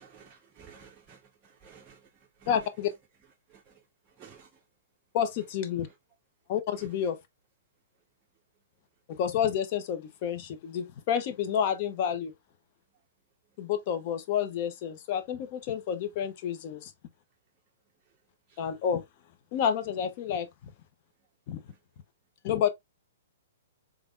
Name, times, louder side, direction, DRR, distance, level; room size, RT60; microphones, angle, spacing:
voice 1, 0.0-2.1 2.4-2.5 3.5-3.8 4.2-4.5 6.8-6.9 18.5-18.6, right 6 dB, 25° right, 0.6 m, -54 dB
voice 2, 2.5-2.9 5.1-5.9 6.5-7.2 9.1-12.3 13.6-16.9 18.6-19.0 19.5-20.7 21.5-21.6 22.4-22.7, left 8 dB, 45° left, 0.7 m, -29 dB
3.5 x 3.5 x 2.4 m
figure-of-eight pair, 115°, 0 cm